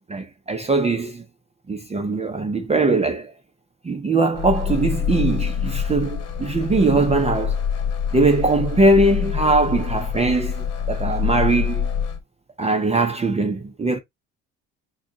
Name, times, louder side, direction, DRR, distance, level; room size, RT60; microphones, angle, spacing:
voice 1, 0.1-1.2 1.7-3.3 3.8-7.6 8.1-11.9 12.6-14.0, right 2 dB, 20° right, 0.7 m, -21 dB
sound 1, 4.4-12.2, left 7 dB, 50° left, 1.2 m, -25 dB
3.7 x 2.3 x 3.7 m
cardioid pair, 90°, 33 cm